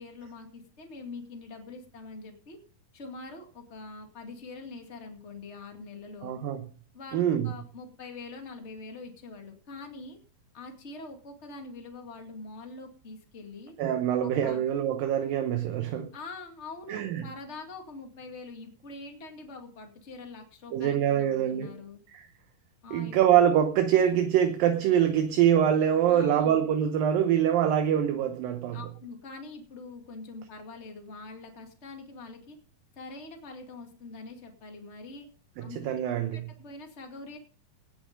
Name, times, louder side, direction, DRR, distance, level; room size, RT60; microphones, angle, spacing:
voice 1, 0.0-2.6 2.9-6.4 6.9-10.2 10.5-13.7 14.2-14.6 16.1-22.0 22.8-23.2 26.1-26.7 28.7-32.6 33.0-35.3 35.6-35.9 36.3-37.4, left 3 dB, 25° left, 1.8 m, -44 dB
voice 2, 6.2-6.7 7.1-7.5 13.8-16.1 16.9-17.3 20.7-21.7 22.1-22.3 22.9-28.8 35.6-36.5, right 9 dB, 75° right, 2.6 m, -24 dB
18.5 x 6.9 x 5.3 m
omnidirectional pair, 4.4 m